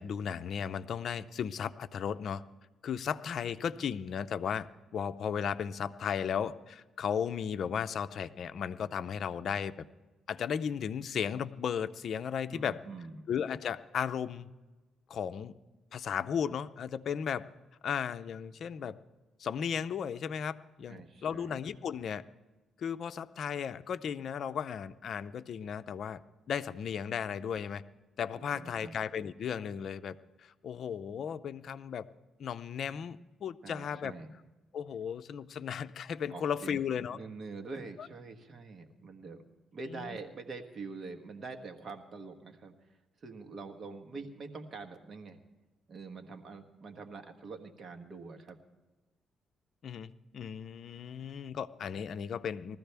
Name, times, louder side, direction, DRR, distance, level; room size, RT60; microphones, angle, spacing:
voice 1, 0.0-2.4 2.8-4.7 4.9-9.9 10.3-12.8 13.3-14.5 15.1-15.6 15.9-17.5 17.8-19.0 19.4-22.2 22.8-26.2 26.5-27.8 28.2-32.1 32.4-34.1 34.7-37.2 38.0-38.1 39.9-40.1 49.8-52.8, left 7 dB, 60° left, 11 dB, 0.5 m, -35 dB
voice 2, 12.5-13.3 20.9-21.6 28.4-28.9 33.6-34.3 36.3-36.8 37.1-39.4 39.7-45.4 45.9-48.6, right 4 dB, 45° right, 5 dB, 1.4 m, -45 dB
20.0 x 14.0 x 3.4 m, 1.2 s
cardioid pair, 90°, 0 cm